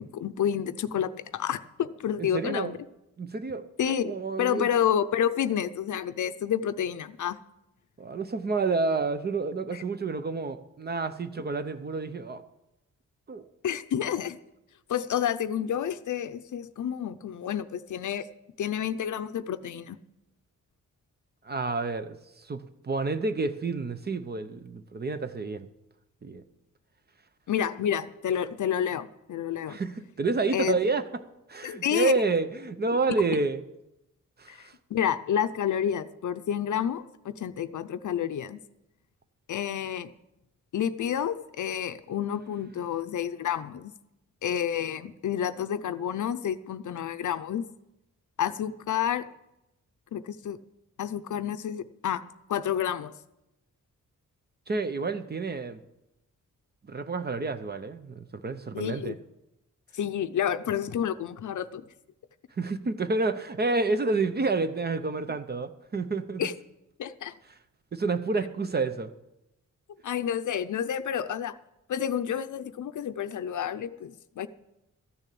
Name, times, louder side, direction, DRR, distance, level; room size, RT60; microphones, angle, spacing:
voice 1, 0.0-2.8 3.8-7.4 9.7-9.8 13.6-14.4 14.9-18.3 18.6-20.0 27.5-29.8 30.5-30.8 31.6-32.2 34.5-38.6 39.5-40.1 40.7-43.9 44.4-47.6 48.4-49.3 50.1-50.6 51.0-52.2 52.5-53.1 58.7-59.2 59.9-61.8 66.4-66.5 67.0-67.4 70.0-71.6 71.9-74.5, left 9 dB, 70° left, 13 dB, 0.6 m, -29 dB
voice 2, 2.2-2.8 3.2-3.6 4.0-4.7 8.0-12.4 13.3-13.5 21.4-25.7 26.2-26.4 29.7-31.0 31.5-33.6 34.4-34.7 54.7-55.8 56.9-59.1 62.6-66.5 67.9-69.1, right 3 dB, 30° right, 11 dB, 0.6 m, -29 dB
14.0 x 6.9 x 8.4 m, 0.90 s
wide cardioid pair, 170°, 31 cm